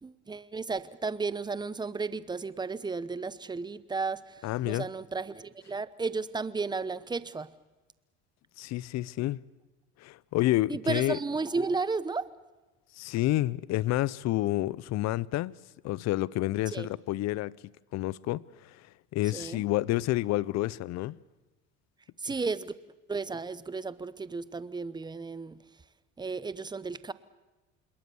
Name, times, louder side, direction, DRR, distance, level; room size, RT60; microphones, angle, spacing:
voice 1, 0.0-7.5 10.7-12.3 16.7-16.9 19.3-19.6 22.2-22.7 23.1-25.6 26.2-27.1, right 4 dB, 15° right, 0.9 m, -33 dB
voice 2, 4.4-4.9 8.6-9.4 10.0-11.2 13.0-15.5 15.8-17.5 17.9-18.8 19.1-21.2, left 16 dB, 55° left, 0.7 m, -29 dB
27.0 x 21.0 x 7.0 m
supercardioid pair, 110°, 32 cm